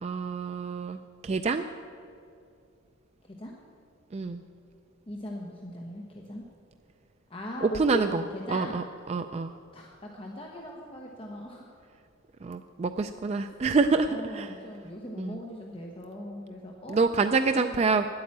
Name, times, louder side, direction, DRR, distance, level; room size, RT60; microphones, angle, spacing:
voice 1, 0.0-1.7 4.1-4.4 7.6-8.2 8.5-9.5 12.4-14.5 15.2-15.4 16.9-18.1, right 4 dB, 30° right, 8 dB, 0.3 m, -27 dB
voice 2, 5.1-6.5 7.3-8.8 9.7-11.7 14.0-17.0 17.5-17.7, equal, 25° left, -1 dB, 1.0 m, -39 dB
10.0 x 8.7 x 8.5 m, 2.5 s
head